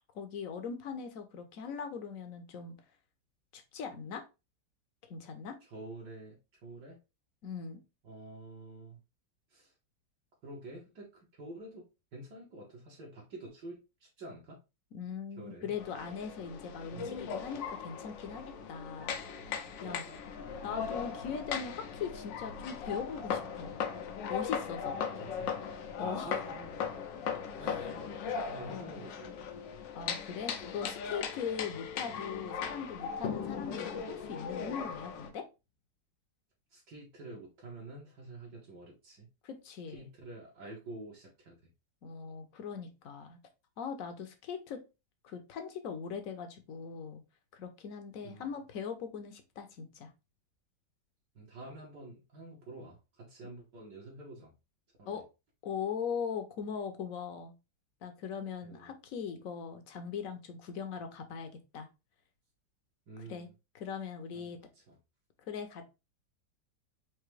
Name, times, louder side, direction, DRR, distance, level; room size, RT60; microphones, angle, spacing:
voice 1, 0.1-2.7 3.5-4.2 5.0-5.6 7.4-7.8 14.9-19.2 19.4-20.0 20.6-23.8 24.3-25.0 26.0-26.3 27.6-27.9 28.7-29.0 29.9-35.5 39.4-40.1 42.0-43.4 43.8-44.8 45.2-47.2 47.5-50.1 55.0-55.3 55.6-57.5 58.0-61.9 63.3-63.5 63.7-64.6 65.4-65.8, left 6 dB, 60° left, 7 dB, 1.0 m, -40 dB
voice 2, 5.7-7.0 8.0-9.0 9.5-9.7 10.4-14.6 15.4-15.7 16.9-17.3 19.8-20.2 25.2-25.5 26.0-27.0 27.6-29.7 36.7-39.3 39.9-41.6 48.2-48.5 51.4-54.5 55.0-55.2 58.6-58.9 63.1-63.5 64.3-65.0, right 2 dB, 70° right, -3 dB, 1.7 m, -48 dB
sound 1, 15.8-35.3, left 7 dB, 85° left, 1.4 m, -38 dB
4.7 x 2.7 x 3.1 m, 0.27 s
omnidirectional pair, 1.9 m